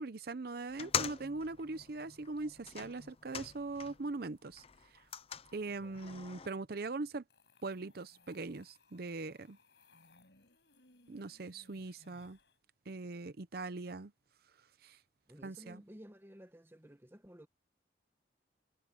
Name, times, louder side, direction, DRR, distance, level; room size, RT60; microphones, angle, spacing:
voice 1, 0.0-4.6 5.5-7.2 7.6-9.6 11.1-12.4 12.9-14.1 14.8-15.0 15.4-15.8, right 3 dB, 60° right, 0.7 m, -41 dB
sound 1, 0.7-4.1 4.4-6.5, left 8 dB, 30° left, 0.5 m, -42 dB
voice 2, 5.7-6.0 15.3-17.5, equal, 15° right, 1.1 m, -55 dB
sound 2, 7.3-12.6, left 3 dB, 70° left, 6.9 m, -66 dB
head